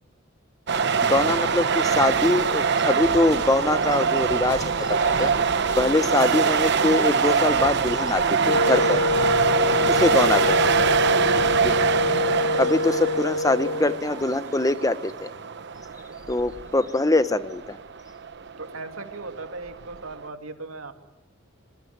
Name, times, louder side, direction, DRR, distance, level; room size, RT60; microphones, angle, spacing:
sound 1, 0.7-20.3, right 6 dB, 55° right, 1.0 m, -24 dB
voice 1, 1.0-5.3 5.8-9.0 10.0-10.6 11.6-11.9 12.6-15.3 16.3-17.8, left 2 dB, 15° left, 12 dB, 0.9 m, -23 dB
Wind instrument woodwind instrument, 8.5-14.1, left 3 dB, 85° left, 1.6 m, -25 dB
voice 2, 9.8-10.5 18.6-20.9, right 3 dB, 80° right, 6 dB, 2.7 m, -37 dB
26.5 x 22.5 x 9.5 m, 1.0 s
head